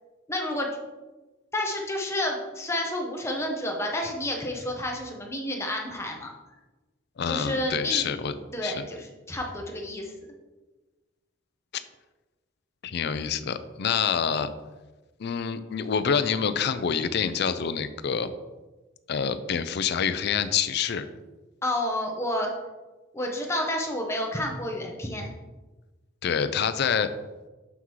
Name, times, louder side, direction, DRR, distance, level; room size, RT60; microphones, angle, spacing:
voice 1, 0.3-0.7 1.5-6.3 7.3-8.1 8.5-10.1 21.6-22.5 23.1-25.3, left 1 dB, 15° left, 1 dB, 0.9 m, -30 dB
voice 2, 7.2-8.3 8.6-8.8 12.8-14.5 15.2-18.3 19.1-21.1 26.2-27.1, left 7 dB, 55° left, 12 dB, 0.4 m, -27 dB
7.0 x 5.9 x 3.1 m, 1.2 s
head